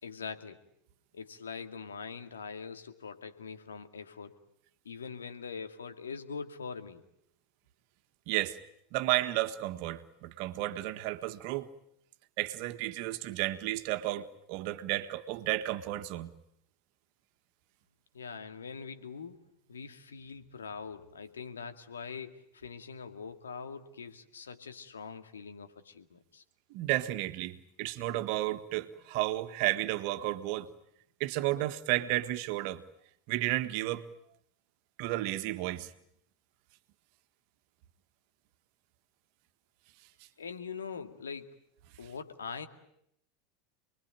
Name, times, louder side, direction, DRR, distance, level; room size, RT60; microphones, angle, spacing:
voice 1, 0.0-0.6 1.1-4.4 4.8-7.0 18.1-26.4 40.4-41.5 42.0-42.7, left 5 dB, 85° left, 2.2 m, -43 dB
voice 2, 8.3-8.6 8.9-11.7 12.4-16.3 26.7-30.7 31.2-32.8 33.3-34.0 35.0-35.9, right 16 dB, 55° right, 1.6 m, -32 dB
28.0 x 21.5 x 9.2 m
hypercardioid pair, 85°, 0 cm